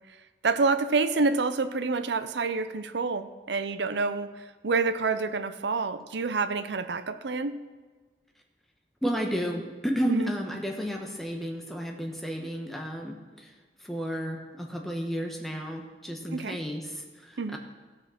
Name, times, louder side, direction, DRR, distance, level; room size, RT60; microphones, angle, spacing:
voice 1, 0.4-4.4 4.6-7.5 10.1-10.3 16.3-16.6 17.4-17.6, right 4 dB, 75° right, 11 dB, 0.6 m, -27 dB
voice 2, 9.0-13.5 13.8-17.6, equal, ahead, 1 dB, 1.2 m, -32 dB
15.0 x 6.5 x 5.8 m, 1.4 s
head